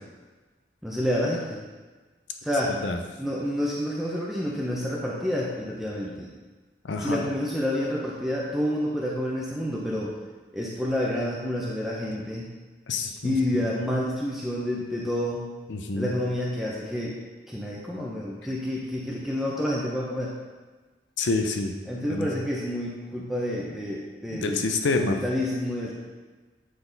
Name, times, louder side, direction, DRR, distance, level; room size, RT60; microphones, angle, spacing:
voice 1, 0.8-1.5 2.4-2.7 3.2-6.3 7.0-10.1 10.5-12.5 13.2-15.4 15.9-17.2 17.5-20.3 21.9-24.6 25.0-25.9, left 1 dB, ahead, -5 dB, 0.6 m, -29 dB
voice 2, 6.8-7.3 12.9-13.4 15.7-16.2 21.2-21.7 22.1-22.3 24.3-25.2, left 3 dB, 90° left, 5 dB, 0.6 m, -27 dB
8.3 x 3.9 x 3.9 m, 1.3 s
head